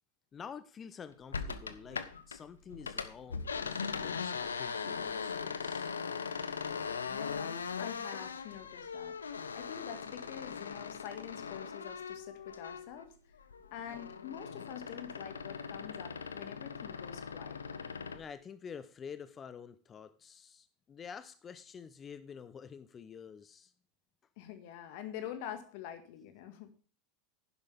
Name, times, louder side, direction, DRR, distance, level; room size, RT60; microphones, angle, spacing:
voice 1, 0.3-2.0 2.3-5.9 18.1-23.7, left 7 dB, 30° left, 13 dB, 0.8 m, -49 dB
sound 1, 1.3-2.4 2.7-13.1 13.4-18.2, left 5 dB, 85° left, 0.7 m, -40 dB
voice 2, 7.0-13.1 13.5-17.6 24.4-26.7, left 10 dB, 60° left, 9 dB, 1.9 m, -46 dB
11.0 x 10.5 x 3.5 m, 0.40 s
figure-of-eight pair, 80°, 0 cm